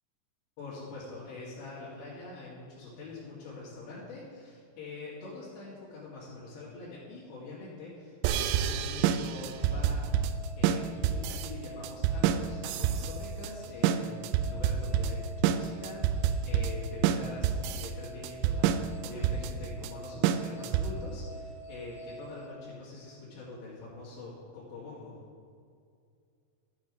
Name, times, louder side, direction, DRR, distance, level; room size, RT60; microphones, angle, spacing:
voice 1, 0.6-10.2 10.6-25.2, left 3 dB, 60° left, -10 dB, 3.9 m, -44 dB
sound 1, 8.2-21.1, right 8 dB, 85° right, 2.9 m, -28 dB
sound 2, 8.9-23.3, right 1 dB, 35° left, 2.5 m, -48 dB
12.5 x 8.4 x 4.8 m, 2.4 s
omnidirectional pair, 5.3 m